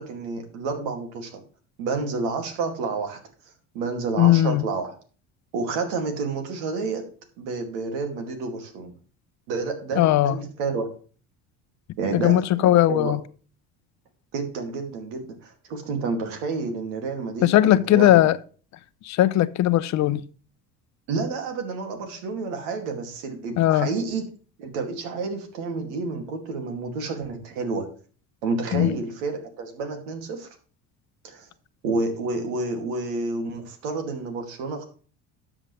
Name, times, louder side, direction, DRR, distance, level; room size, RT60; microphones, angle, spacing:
voice 1, 0.0-1.4 1.8-3.2 3.7-4.9 5.5-7.1 7.4-8.9 9.5-10.9 12.0-13.1 14.3-18.1 21.1-24.3 24.6-27.9 28.4-30.5 31.2-31.5 31.8-34.8, right 4 dB, 90° right, 2.5 m, -29 dB
voice 2, 4.2-4.7 10.0-10.4 12.1-13.2 17.4-18.4 19.0-20.2 23.6-23.9 28.7-28.9, left 14 dB, 55° left, 0.7 m, -18 dB
12.5 x 7.3 x 3.3 m
supercardioid pair, 100°, 33 cm